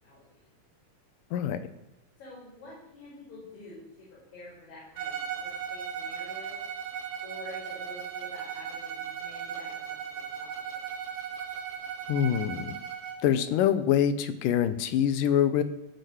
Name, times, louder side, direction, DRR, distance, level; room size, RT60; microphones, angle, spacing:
voice 1, 0.0-0.5 2.2-6.6 7.2-10.8, left 2 dB, 55° left, -7 dB, 6.4 m, -48 dB
Bowed string instrument, 5.0-13.3, right 7 dB, 85° right, 3.4 m, -37 dB
voice 2, 12.1-12.8 13.2-15.6, left 9 dB, 75° left, 11 dB, 2.4 m, -25 dB
16.0 x 6.8 x 7.9 m, 0.92 s
omnidirectional pair, 4.0 m